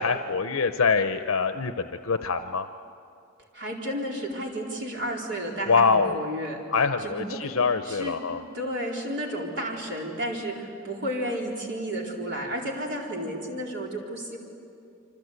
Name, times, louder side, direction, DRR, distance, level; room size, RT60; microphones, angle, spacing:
voice 1, 0.0-2.7 5.7-6.2 6.7-8.4, left 5 dB, 75° left, 8 dB, 0.8 m, -24 dB
voice 2, 3.5-6.6 7.0-7.5 7.8-8.2 8.5-14.4, equal, 60° right, -1 dB, 4.3 m, -32 dB
27.5 x 25.0 x 8.3 m, 2.5 s
head